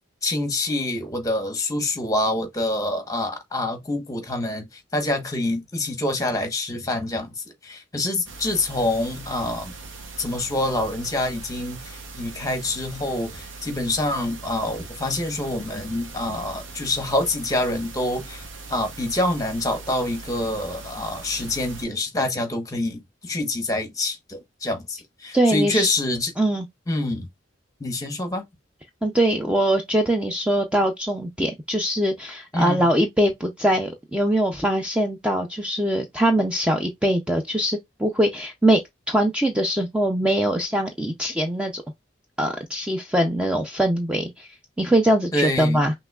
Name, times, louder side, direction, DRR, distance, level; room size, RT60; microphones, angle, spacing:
voice 1, 0.2-9.7 10.2-26.3 26.9-27.2 27.8-28.4 32.5-32.9 45.3-45.9, left 1 dB, 20° left, 1.0 m, -26 dB
sound 1, 8.3-21.9, right 3 dB, 90° right, 1.0 m, -40 dB
voice 2, 25.3-25.9 26.4-26.6 29.0-38.8 39.1-41.8 42.4-44.5 44.8-45.9, right 1 dB, 5° right, 0.4 m, -22 dB
5.9 x 3.0 x 2.3 m
head